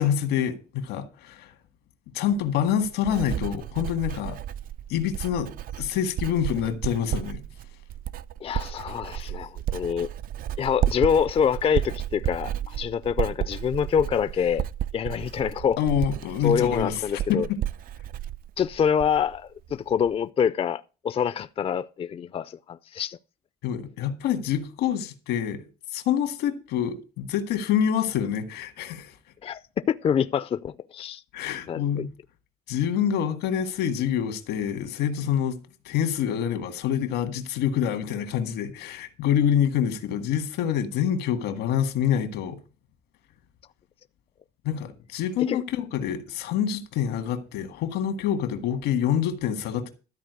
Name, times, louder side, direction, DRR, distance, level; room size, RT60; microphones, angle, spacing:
voice 1, 0.0-1.5 2.1-4.4 4.9-7.4 9.2-9.3 15.8-17.6 23.6-25.6 25.9-29.1 31.3-32.1 32.7-35.6 35.9-42.6 44.6-49.9, left 9 dB, 85° left, 1.9 m, -26 dB
Writing, 2.3-19.4 19.7-20.1, right 11 dB, 60° right, 0.5 m, -32 dB
voice 2, 8.4-10.1 10.6-14.6 14.9-15.8 16.4-17.5 18.6-23.2 29.4-29.6 29.9-31.2 31.7-32.1 45.4-45.6, left 7 dB, 35° left, 0.4 m, -26 dB
13.0 x 4.5 x 8.1 m
cardioid pair, 110°, 17 cm